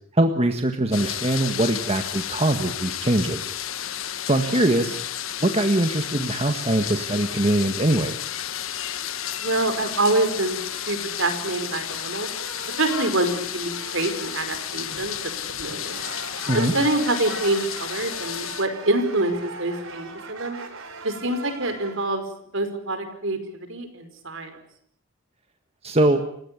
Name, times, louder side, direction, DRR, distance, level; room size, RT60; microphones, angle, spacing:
voice 1, 0.1-3.5 4.3-5.0 5.4-8.2 16.5-16.7 25.8-26.2, right 1 dB, 30° right, 6 dB, 1.7 m, -22 dB
sound 1, 0.9-18.7, left 10 dB, 75° left, 1.4 m, -32 dB
voice 2, 4.5-4.9 9.4-10.6 10.9-12.3 12.8-15.2 15.6-16.0 16.5-20.6 21.0-22.2 22.5-24.6, right 2 dB, 65° right, 8 dB, 5.2 m, -26 dB
sound 2, 9.7-22.0, right 4 dB, 80° right, 4.4 m, -41 dB
30.0 x 17.0 x 8.4 m, 0.67 s
head